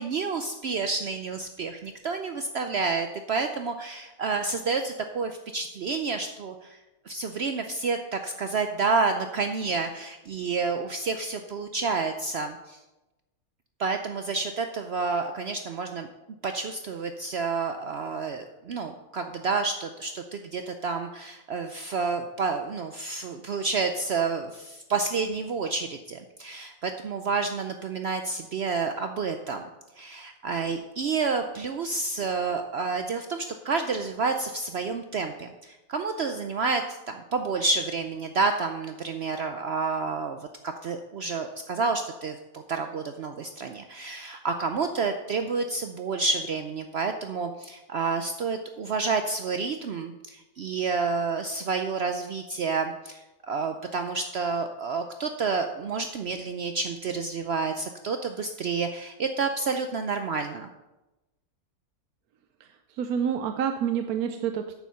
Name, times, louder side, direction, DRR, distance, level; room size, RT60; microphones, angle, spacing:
voice 1, 0.0-6.8 7.1-12.8 13.8-16.1 16.4-29.7 30.0-60.7, right 4 dB, 60° right, 6 dB, 0.7 m, -29 dB
voice 2, 62.6-64.7, right 8 dB, 80° right, 7 dB, 1.1 m, -28 dB
9.0 x 7.0 x 5.7 m, 1.0 s
omnidirectional pair, 1.5 m